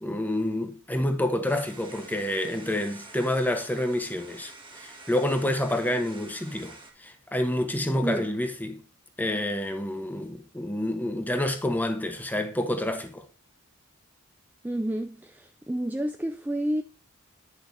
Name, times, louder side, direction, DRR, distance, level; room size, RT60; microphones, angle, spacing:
voice 1, 0.0-8.8 9.2-13.2, left 1 dB, 10° left, 1.0 m, -28 dB
sound 1, 1.5-6.9, right 3 dB, 25° right, 1.7 m, -48 dB
voice 2, 8.0-8.3 14.6-16.8, right 1 dB, 10° right, 0.4 m, -30 dB
10.0 x 6.6 x 2.7 m
head